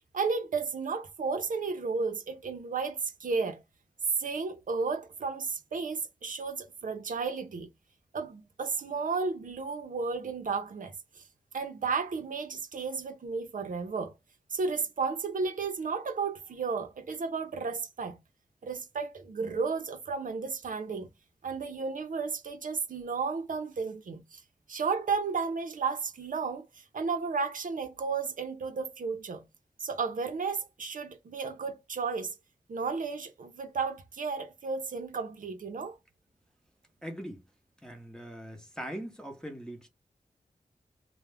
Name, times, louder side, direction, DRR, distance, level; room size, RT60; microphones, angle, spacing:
voice 1, 0.1-3.6 4.2-7.7 8.1-11.2 11.5-14.1 14.5-18.2 18.6-21.1 21.4-24.4 24.7-29.4 29.8-32.3 32.7-36.0, right 4 dB, 70° right, 0.5 m, -33 dB
voice 2, 37.0-37.4 37.8-39.9, equal, 5° left, 0.7 m, -41 dB
2.3 x 2.0 x 3.3 m
wide cardioid pair, 75°, 14 cm